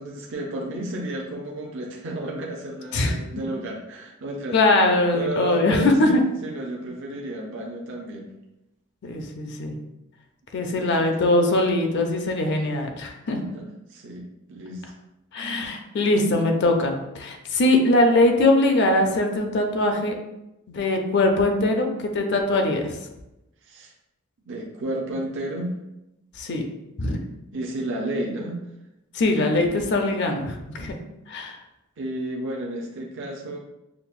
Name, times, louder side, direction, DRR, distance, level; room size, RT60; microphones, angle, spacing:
voice 1, 0.0-4.6 5.1-8.3 10.6-11.2 13.4-15.0 23.6-23.9 24.5-25.7 27.5-28.6 32.0-33.6, right 1 dB, 60° right, -1 dB, 0.5 m, -32 dB
voice 2, 4.5-6.2 9.0-9.7 10.5-13.4 15.3-20.1 20.7-22.9 26.4-26.6 27.0-27.2 29.1-31.0 31.3-31.6, left 2 dB, 55° left, 4 dB, 0.5 m, -21 dB
5.7 x 2.0 x 2.4 m, 0.91 s
head